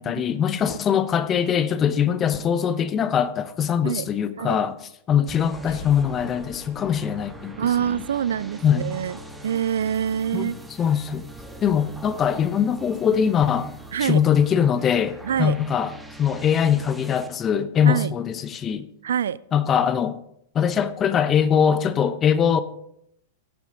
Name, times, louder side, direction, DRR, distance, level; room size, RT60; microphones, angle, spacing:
voice 1, 0.0-4.7 5.1-7.6 8.6-8.9 10.3-10.5 10.8-11.3 11.6-13.7 14.0-15.9 16.2-18.9 19.5-20.2 20.5-22.6, left 8 dB, 25° left, 14 dB, 0.8 m, -22 dB
sound 1, 5.3-17.3, right 1 dB, 5° right, 1.3 m, -42 dB
sound 2, 5.6-9.1, left 2 dB, 80° left, 3.6 m, -46 dB
voice 2, 7.6-10.6 13.9-14.2 15.2-15.6 17.8-18.1 19.0-19.4, right 9 dB, 70° right, 22 dB, 0.3 m, -25 dB
17.0 x 7.2 x 3.9 m, 0.74 s
figure-of-eight pair, 100°, 0 cm